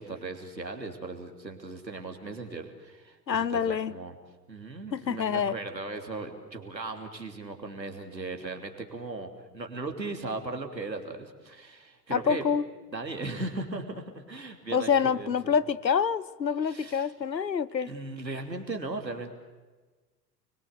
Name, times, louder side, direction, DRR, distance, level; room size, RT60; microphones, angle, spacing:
voice 1, 0.0-4.1 4.5-12.4 12.9-15.5 16.6-17.1 17.8-19.3, right 3 dB, 85° right, 3.1 m, -38 dB
voice 2, 3.3-3.9 4.9-5.6 12.1-12.7 14.7-17.9, left 7 dB, 85° left, 0.9 m, -26 dB
30.0 x 22.5 x 8.2 m
figure-of-eight pair, 80°, 49 cm